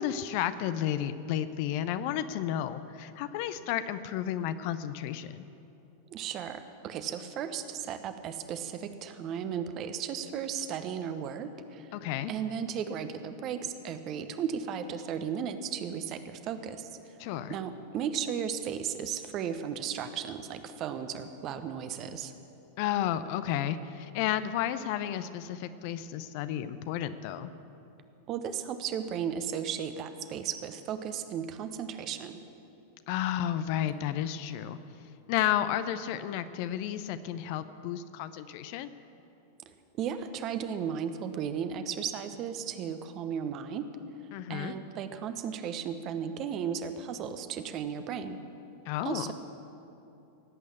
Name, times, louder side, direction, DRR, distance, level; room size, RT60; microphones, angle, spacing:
voice 1, 0.0-5.5 11.9-12.3 17.2-17.5 22.8-27.5 33.1-34.8 35.3-38.9 44.3-44.7 48.9-49.3, left 11 dB, 45° left, 12 dB, 0.6 m, -32 dB
voice 2, 6.1-11.9 12.3-17.2 17.5-22.3 28.3-32.4 40.0-43.9 44.5-48.4 49.0-49.3, right 8 dB, 35° right, 9 dB, 1.0 m, -35 dB
17.5 x 8.4 x 8.5 m, 2.8 s
figure-of-eight pair, 90°, 0 cm